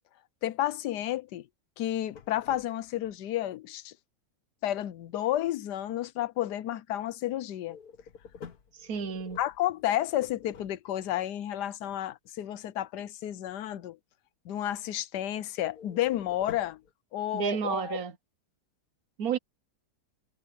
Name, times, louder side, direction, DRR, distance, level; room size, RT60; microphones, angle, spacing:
voice 1, 0.4-1.5 1.8-3.9 4.6-7.8 9.4-14.0 14.4-16.8 17.1-18.0, left 13 dB, 80° left, 1.3 m, -31 dB
sound 1, 1.8-3.1 7.6-11.2 15.7-16.9, left 6 dB, 65° left, 1.8 m, -50 dB
voice 2, 8.7-9.4 17.3-18.1 19.2-19.4, right 6 dB, 65° right, 1.4 m, -31 dB
omnidirectional pair, 1.8 m